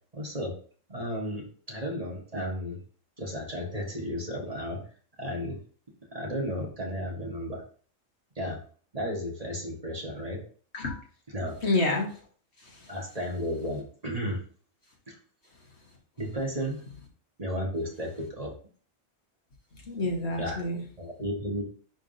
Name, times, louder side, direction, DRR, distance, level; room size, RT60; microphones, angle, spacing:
voice 1, 0.1-0.5 0.9-2.8 3.2-4.8 5.2-5.6 6.1-7.6 8.3-8.6 8.9-10.4 11.3-11.5 12.9-14.4 15.1-15.2 16.2-16.8 17.4-18.5 20.4-20.6 21.0-21.6, equal, 30° right, -1 dB, 1.5 m, -33 dB
voice 2, 11.6-12.2 12.6-12.9 19.8-20.8, left 2 dB, 55° left, -1 dB, 1.6 m, -28 dB
10.5 x 3.6 x 2.7 m, 0.43 s
omnidirectional pair, 1.4 m